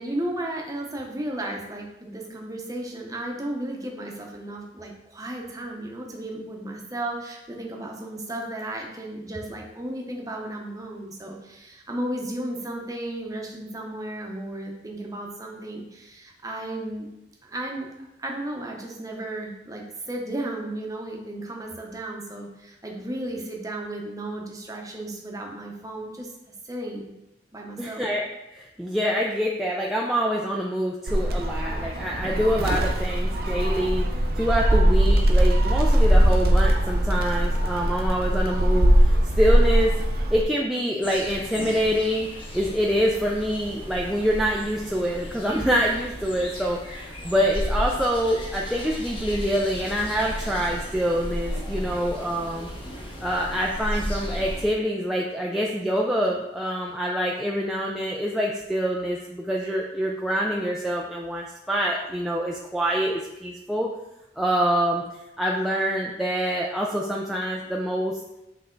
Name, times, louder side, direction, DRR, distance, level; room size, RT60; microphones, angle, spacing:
voice 1, 0.0-17.1 17.4-17.9 18.2-26.3 26.6-27.1 27.5-28.1, right 1 dB, 20° right, 0 dB, 0.8 m, -34 dB
voice 2, 27.8-28.2 28.5-34.0 34.4-39.9 40.3-42.3 42.5-52.7 53.2-63.9 64.4-65.0 65.4-68.2, equal, ahead, -3 dB, 0.4 m, -25 dB
Gull seagull, 31.1-40.4, right 1 dB, 50° right, 0.6 m, -20 dB
sound 1, 41.0-54.7, equal, 25° left, 1.0 m, -34 dB
7.8 x 3.4 x 3.8 m, 0.94 s
head